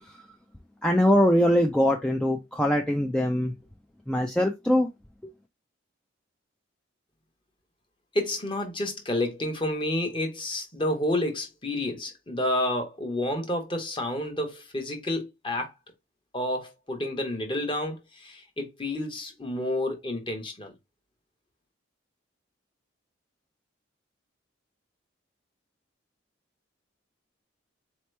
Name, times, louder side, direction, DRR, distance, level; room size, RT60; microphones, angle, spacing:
voice 1, 0.8-3.5 4.1-4.9, equal, 5° left, 0.3 m, -22 dB
voice 2, 8.1-15.7 16.3-20.7, left 1 dB, 25° left, 1.0 m, -30 dB
4.2 x 2.9 x 3.2 m
head